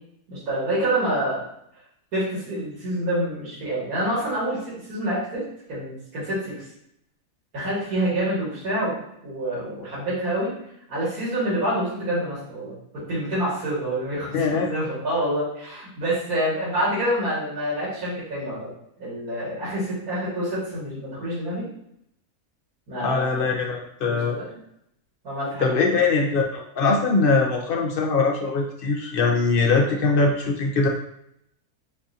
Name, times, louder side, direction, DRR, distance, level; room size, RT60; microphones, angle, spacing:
voice 1, 0.3-1.4 2.1-5.4 5.7-6.6 7.5-10.5 10.9-18.7 19.0-21.7 22.9-23.4 24.1-24.6 25.2-25.7 29.6-29.7, right 1 dB, 80° right, -9 dB, 2.5 m, -27 dB
voice 2, 14.3-14.7 23.0-24.3 25.6-30.9, left 4 dB, 55° left, 0 dB, 0.7 m, -22 dB
6.8 x 2.5 x 2.7 m, 0.75 s
omnidirectional pair, 1.5 m